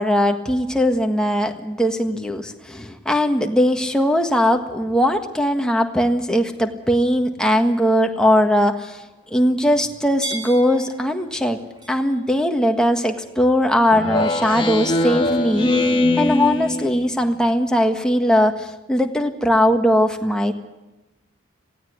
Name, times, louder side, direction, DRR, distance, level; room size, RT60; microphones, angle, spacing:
voice 1, 0.0-9.0 9.3-11.6 11.9-20.5, equal, 5° left, 4 dB, 1.6 m, -19 dB
sound 1, 5.1-13.9, right 3 dB, 20° right, 4.2 m, -42 dB
Speech synthesizer, 13.9-17.4, left 2 dB, 25° left, 1.5 m, -22 dB
18.0 x 16.5 x 9.7 m, 1.0 s
head